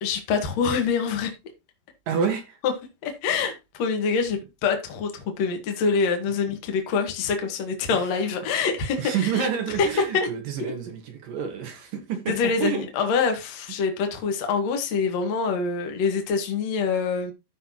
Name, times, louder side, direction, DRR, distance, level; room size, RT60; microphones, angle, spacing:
voice 1, 0.0-1.3 2.6-2.7 3.0-9.5 9.8-9.9 10.1-10.3 12.3-17.3, left 5 dB, 80° left, 1.5 m, -25 dB
voice 2, 2.1-2.6 7.9-8.1 9.0-12.9, right 7 dB, 65° right, 2.3 m, -28 dB
15.0 x 5.7 x 3.0 m
omnidirectional pair, 5.8 m